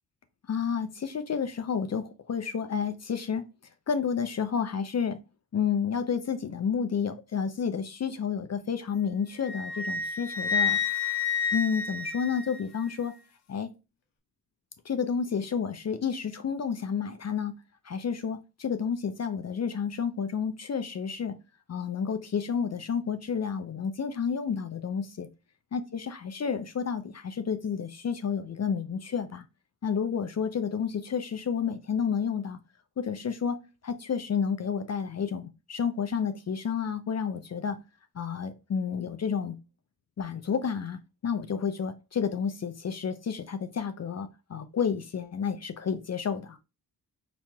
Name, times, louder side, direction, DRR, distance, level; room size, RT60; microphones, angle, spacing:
voice 1, 0.5-3.5 3.9-5.2 5.5-10.8 11.5-13.1 13.5-13.7 14.8-17.6 17.8-21.4 21.7-25.3 25.7-29.4 29.8-32.6 33.0-33.6 33.8-37.8 38.1-39.6 40.2-46.6, left 6 dB, 40° left, 0.5 m, -30 dB
Wind instrument woodwind instrument, 9.4-12.9, left 5 dB, 80° left, 0.7 m, -30 dB
4.2 x 3.0 x 2.2 m
supercardioid pair, 45°, 41 cm